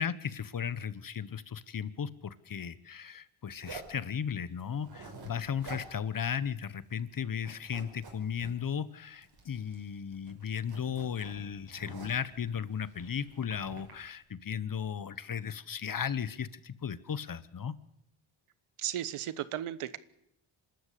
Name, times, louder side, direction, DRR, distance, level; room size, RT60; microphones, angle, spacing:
voice 1, 0.0-17.7, left 7 dB, 40° left, 17 dB, 1.1 m, -36 dB
Zipper (clothing), 3.6-4.0 4.7-5.3 5.6-5.9 6.2-6.3 6.7-7.1 7.4-8.5 9.2-9.9 10.1-12.3 12.9-13.9, right 4 dB, 50° right, 6.5 m, -48 dB
voice 2, 18.8-20.0, right 12 dB, 90° right, 17 dB, 1.2 m, -35 dB
26.5 x 13.0 x 8.5 m, 0.82 s
cardioid pair, 85°, 49 cm